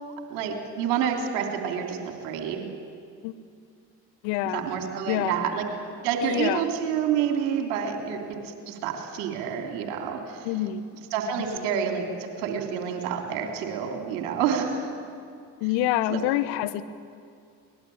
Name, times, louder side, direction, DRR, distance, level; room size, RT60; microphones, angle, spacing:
voice 1, 0.3-2.7 4.5-5.7 6.0-8.2 8.4-10.5 11.1-14.9 16.1-16.2, right 7 dB, 65° right, 3 dB, 3.5 m, -28 dB
voice 2, 4.2-4.6 5.1-5.4 6.2-6.7 10.4-10.9 11.5-11.6 15.6-16.8, left 13 dB, 65° left, 13 dB, 1.1 m, -26 dB
23.5 x 19.5 x 8.7 m, 2.3 s
figure-of-eight pair, 55°, 46 cm